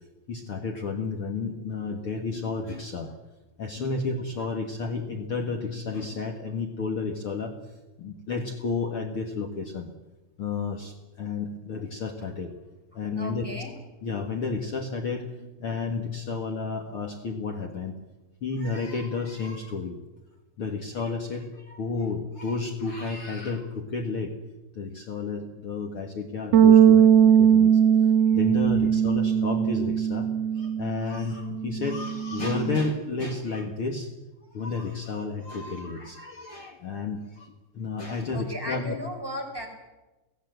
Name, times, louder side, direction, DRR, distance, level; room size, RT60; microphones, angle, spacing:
voice 1, 0.3-3.1 3.6-7.5 8.0-9.9 10.4-10.9 11.2-12.5 12.9-13.4 14.0-15.2 15.6-17.9 18.4-19.9 20.6-24.3 24.8-27.1 27.4-27.7 28.3-30.3 30.6-34.1 34.5-37.2 37.7-39.0, left 4 dB, 65° left, 3 dB, 1.3 m, -31 dB
voice 2, 12.9-13.7 28.2-28.4 38.3-39.7, equal, 5° right, 1 dB, 4.5 m, -36 dB
Bass guitar, 26.5-32.8, right 8 dB, 80° right, 1.4 m, -20 dB
25.5 x 18.0 x 8.0 m, 1.1 s
omnidirectional pair, 5.2 m